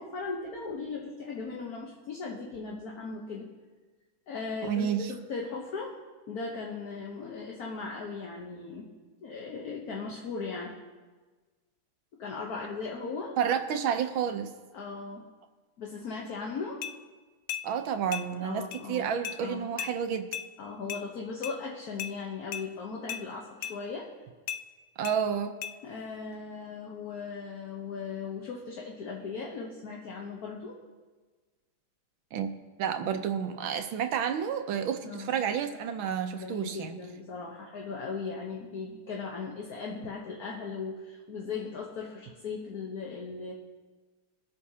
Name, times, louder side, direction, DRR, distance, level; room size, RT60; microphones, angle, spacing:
voice 1, 0.0-3.5 4.3-6.0 6.3-8.9 9.2-10.7 12.1-13.4 14.7-15.3 15.8-16.9 18.4-19.7 20.6-24.1 25.8-30.8 35.0-35.4 36.4-43.5, left 4 dB, 55° left, -1 dB, 1.3 m, -38 dB
voice 2, 4.6-5.1 13.4-14.5 17.6-20.3 25.0-25.6 32.3-32.5 32.8-37.0, right 8 dB, 75° right, 7 dB, 1.4 m, -30 dB
sound 1, 16.8-17.0 17.5-17.7 18.1-18.3 18.7-18.8 19.2-19.4 19.8-19.9 20.3-20.5 20.9-21.0 21.4-21.6 22.0-22.1 22.5-22.7 23.1-23.2 23.6-23.8 24.5-24.6 25.0-25.2 25.6-25.7, left 10 dB, 90° left, 1.5 m, -35 dB
23.0 x 7.8 x 2.8 m, 1.3 s
omnidirectional pair, 2.4 m